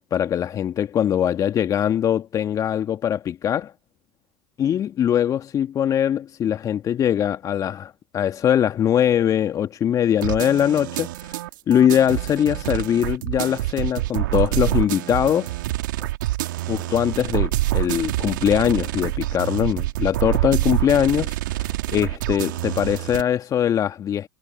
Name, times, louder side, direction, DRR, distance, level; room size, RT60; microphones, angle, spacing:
voice 1, 0.1-3.7 4.6-11.1 11.7-15.5 16.7-24.3, left 10 dB, 30° left, 1.7 m, -22 dB
sound 1, 10.2-23.2, right 17 dB, 65° right, 2.0 m, -26 dB
hypercardioid pair, 95°, 11 cm